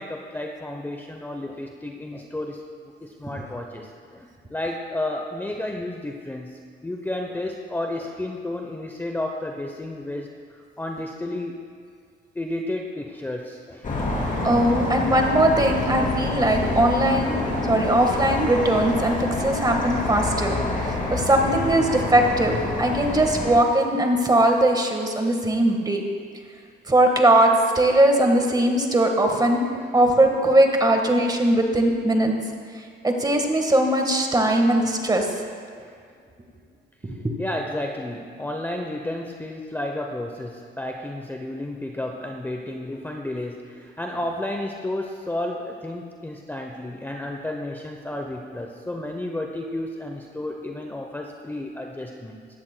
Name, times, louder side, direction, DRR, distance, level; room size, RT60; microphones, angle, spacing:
voice 1, 0.0-2.6 3.0-11.6 12.3-13.9 28.8-28.9 29.7-29.9 35.8-36.0 37.4-52.4, left 1 dB, 10° left, 2 dB, 0.7 m, -32 dB
sound 1, 13.8-23.6, left 2 dB, 40° left, 2.8 m, -27 dB
voice 2, 14.4-26.0 26.9-29.6 29.9-32.3 32.7-35.3 37.0-37.4, right 1 dB, 20° right, 3 dB, 1.4 m, -20 dB
15.5 x 12.0 x 2.2 m, 2.1 s
cardioid pair, 90°, 20 cm